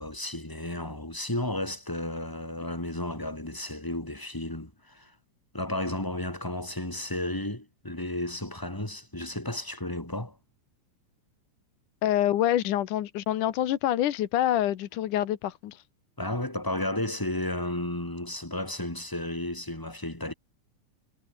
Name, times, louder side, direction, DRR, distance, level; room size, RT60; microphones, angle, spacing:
voice 1, 0.0-5.1 5.5-10.4 16.2-20.3, left 1 dB, 5° left, 3.5 m, -33 dB
voice 2, 12.0-15.8, left 12 dB, 80° left, 2.8 m, -26 dB
omnidirectional pair, 3.6 m